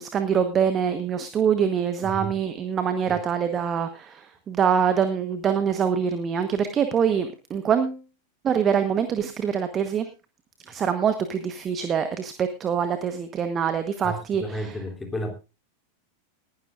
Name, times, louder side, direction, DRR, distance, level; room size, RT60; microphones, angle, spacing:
voice 1, 0.0-8.0 8.4-10.1 10.7-14.8, right 7 dB, 25° right, 1.2 m, -24 dB
voice 2, 14.0-15.3, equal, 10° left, 3.2 m, -32 dB
19.0 x 12.0 x 2.5 m
figure-of-eight pair, 90°, 0 cm